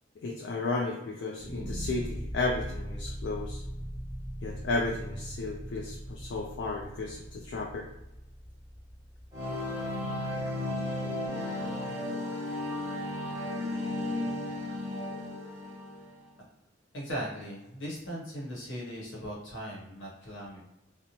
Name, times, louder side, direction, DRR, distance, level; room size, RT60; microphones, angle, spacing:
voice 1, 0.2-3.6 4.4-7.9, left 3 dB, 70° left, 0 dB, 0.3 m, -33 dB
sound 1, 1.4-10.5, equal, 5° left, 0.6 m, -40 dB
sound 2, 9.3-16.2, left 1 dB, 20° right, 0.9 m, -34 dB
voice 2, 16.9-20.6, equal, 85° left, -3 dB, 1.0 m, -38 dB
2.7 x 2.0 x 2.9 m, 0.91 s
head